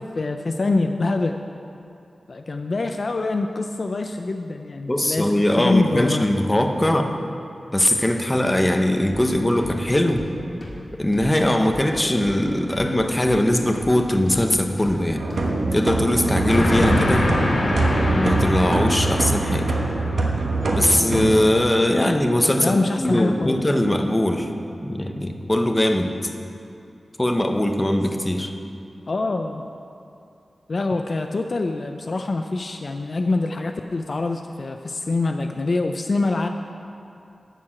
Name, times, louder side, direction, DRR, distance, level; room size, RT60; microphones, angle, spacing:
voice 1, 0.2-1.4 2.3-5.3 5.6-6.3 22.6-23.6 29.1-29.6 30.7-36.5, left 3 dB, 50° left, 5 dB, 0.4 m, -25 dB
voice 2, 4.9-7.2 7.7-10.2 10.9-15.2 15.7-17.3 18.1-19.7 20.7-24.5 24.8-26.1 27.2-28.5, left 1 dB, 15° left, 4 dB, 0.8 m, -21 dB
sound 1, 9.1-16.2, left 1 dB, 30° left, 2.0 m, -37 dB
sound 2, 15.2-21.4, right 2 dB, 75° right, 1.2 m, -23 dB
Train, 16.5-20.4, left 1 dB, 70° left, 1.9 m, -24 dB
13.0 x 4.7 x 8.7 m, 2.6 s
wide cardioid pair, 120°, 0 cm